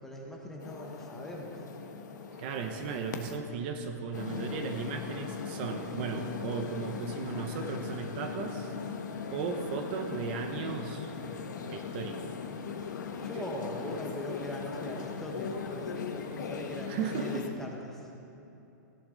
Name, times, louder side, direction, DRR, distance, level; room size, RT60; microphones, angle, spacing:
voice 1, 0.0-1.6 13.2-18.1, left 1 dB, 5° left, -1 dB, 0.7 m, -41 dB
sound 1, 0.6-3.4 4.1-17.5, left 6 dB, 85° left, 1.2 m, -39 dB
voice 2, 2.4-8.7 9.3-12.4 16.9-17.4, right 5 dB, 30° right, 5 dB, 0.8 m, -36 dB
16.5 x 11.0 x 3.9 m, 2.9 s
supercardioid pair, 175°, 10 cm